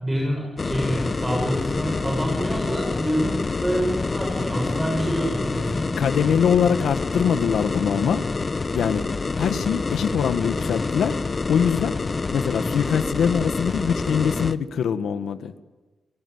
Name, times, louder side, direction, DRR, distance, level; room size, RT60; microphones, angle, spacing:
voice 1, 0.0-5.8, equal, 10° right, -2 dB, 7.1 m, -26 dB
sound 1, 0.6-14.5, left 3 dB, 30° left, 0.8 m, -27 dB
voice 2, 6.0-8.2 8.7-9.0 9.4-11.1 11.5-12.0 12.3-15.5, left 7 dB, 85° left, 10 dB, 1.4 m, -23 dB
30.0 x 18.5 x 9.5 m, 1.2 s
wide cardioid pair, 135°, 0 cm